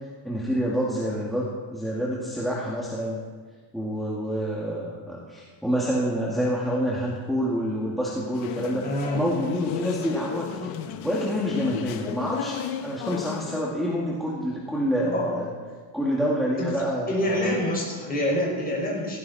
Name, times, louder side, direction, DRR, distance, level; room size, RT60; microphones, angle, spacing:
voice 1, 0.2-3.2 3.7-10.7 11.0-15.5 15.9-17.5, equal, ahead, -5 dB, 2.2 m, -27 dB
sound 1, 8.3-13.6, left 9 dB, 70° left, 1.4 m, -34 dB
voice 2, 8.8-9.2 15.1-15.3 16.6-16.8 17.1-19.2, left 1 dB, 20° left, -3 dB, 5.4 m, -26 dB
17.5 x 16.5 x 4.2 m, 1.5 s
cardioid pair, 155°, 49 cm